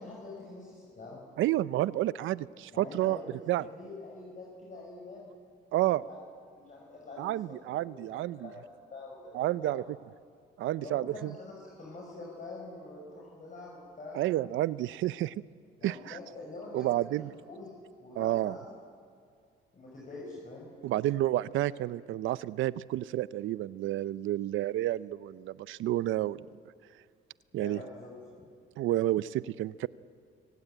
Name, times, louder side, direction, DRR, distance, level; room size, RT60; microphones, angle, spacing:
voice 1, 0.0-1.2 2.7-5.3 6.1-6.2 6.5-7.4 7.8-9.7 10.8-14.2 15.8-17.7 18.0-18.7 19.7-20.7 27.5-28.1 28.4-28.5, left 2 dB, 40° left, -3 dB, 6.0 m, -45 dB
voice 2, 1.4-3.2 3.5-3.7 5.7-6.0 7.2-8.5 9.3-9.8 10.6-11.4 14.1-15.3 15.8-16.2 16.7-17.3 18.2-18.6 20.8-26.5 27.5-27.8 28.8-29.9, right 14 dB, 80° right, 18 dB, 0.6 m, -30 dB
24.5 x 17.5 x 9.0 m, 2.2 s
cardioid pair, 90°, 20 cm